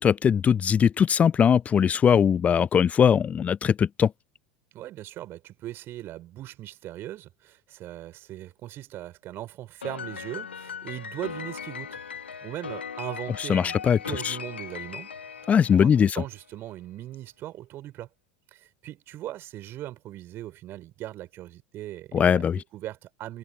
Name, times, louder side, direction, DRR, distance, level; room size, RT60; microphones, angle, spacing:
voice 1, 0.0-4.1 13.5-14.0 14.2-14.4 15.5-16.2 22.1-22.6, left 7 dB, 25° left, 0.4 m, -20 dB
voice 2, 4.7-12.0 12.4-13.8 14.0-15.1 15.4-18.1 18.5-23.4, right 14 dB, 40° right, 5.4 m, -39 dB
Piano, 9.8-16.3, left 7 dB, 80° left, 1.4 m, -39 dB
figure-of-eight pair, 75°, 6 cm